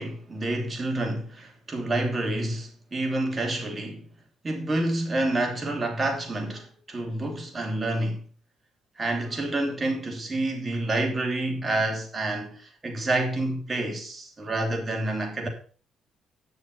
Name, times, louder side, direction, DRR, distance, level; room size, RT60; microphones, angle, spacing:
voice 1, 0.0-4.0 4.4-8.2 9.0-15.5, right 2 dB, 30° right, 2.9 m, -28 dB
9.9 x 6.6 x 5.5 m
cardioid pair, 90°, 0 cm